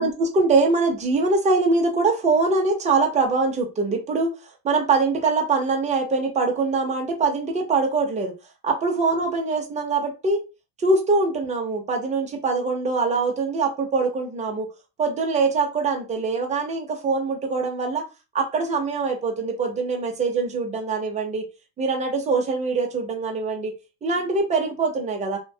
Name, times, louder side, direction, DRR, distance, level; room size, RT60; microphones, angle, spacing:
voice 1, 0.0-8.3 8.6-10.4 10.8-14.7 15.0-18.0 18.3-21.5 21.8-23.7 24.0-25.4, right 3 dB, 15° right, 0.6 m, -23 dB
2.7 x 2.2 x 2.7 m
supercardioid pair, 135°, 41 cm